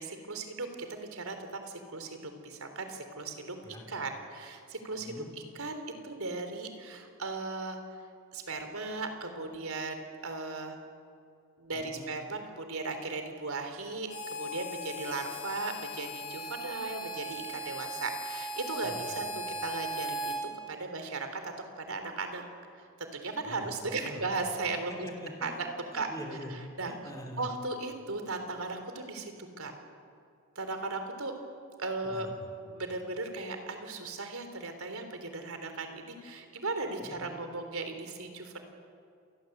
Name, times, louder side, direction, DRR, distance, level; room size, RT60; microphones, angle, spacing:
voice 1, 0.0-1.4 1.7-3.6 3.9-5.1 5.6-5.7 6.0-8.0 8.3-10.8 11.6-20.3 20.7-22.4 23.0-25.1 25.4-25.7 25.9-26.1 26.5-26.9 27.4-29.7 30.6-31.3 31.8-32.3 32.6-38.6, right 3 dB, 80° right, 6 dB, 3.6 m, -37 dB
voice 2, 11.7-12.1 18.8-19.2 23.5-24.3 24.9-26.6 26.8-27.5 32.0-32.3 37.0-37.4, left 1 dB, 15° left, 1 dB, 4.2 m, -44 dB
Harmonica, 14.1-20.4, equal, 80° left, 5.9 m, -38 dB
28.5 x 20.5 x 8.1 m, 2.5 s
head